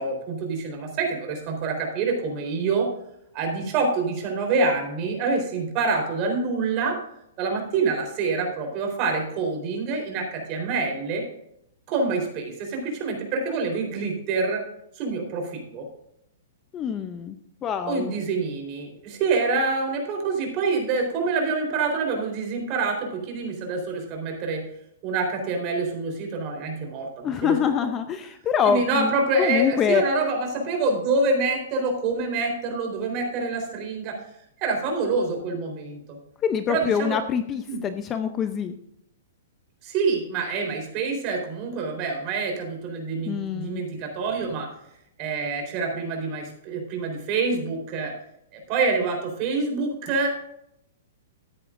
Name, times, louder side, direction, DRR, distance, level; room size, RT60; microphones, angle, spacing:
voice 1, 0.0-2.9 3.3-7.0 7.4-11.2 11.9-14.6 15.0-15.8 17.9-24.6 25.0-27.6 28.6-34.1 34.6-36.2 36.7-37.2 37.7-37.8 39.8-44.7 45.2-48.1 48.7-50.3, right 4 dB, 30° right, 2 dB, 4.0 m, -26 dB
voice 2, 16.7-17.4 17.6-18.1 27.2-29.1 29.4-30.0 36.4-38.8 43.3-43.8, left 7 dB, 20° left, 9 dB, 0.6 m, -25 dB
14.5 x 9.8 x 2.6 m, 0.76 s
hypercardioid pair, 160°, 0 cm